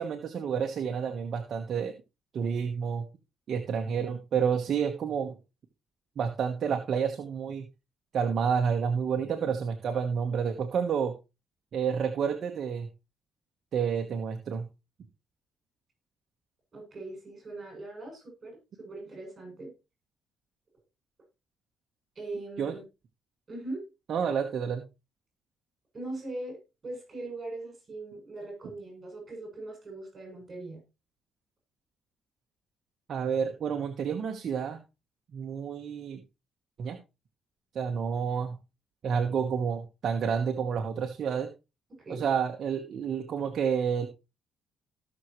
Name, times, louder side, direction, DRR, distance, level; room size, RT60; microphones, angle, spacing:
voice 1, 0.0-2.0 2.3-3.0 3.5-5.4 6.2-7.7 8.1-11.2 11.7-12.9 13.7-14.7 22.6-22.8 24.1-24.8 33.1-34.8 35.3-36.2 36.8-37.0 37.7-38.6 39.0-41.5 42.1-44.1, right 7 dB, 50° right, 4 dB, 1.3 m, -29 dB
voice 2, 16.7-19.7 22.1-22.8 23.5-23.8 25.9-26.6 26.8-30.8 42.0-42.3, right 2 dB, 30° right, 2 dB, 7.9 m, -40 dB
17.5 x 6.4 x 3.2 m, 0.27 s
cardioid pair, 135°, 0 cm